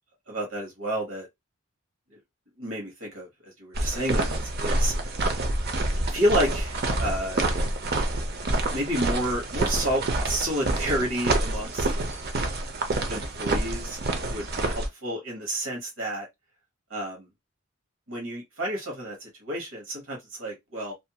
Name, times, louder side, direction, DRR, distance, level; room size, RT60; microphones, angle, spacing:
voice 1, 0.3-1.3 2.6-4.9 6.0-7.4 8.7-11.9 13.1-14.0 14.3-16.3 16.9-17.3 18.1-20.9, equal, 70° right, 1.2 m, -30 dB
sound 1, 3.7-14.9, right 2 dB, 50° right, 0.6 m, -27 dB
2.9 x 2.5 x 2.2 m
head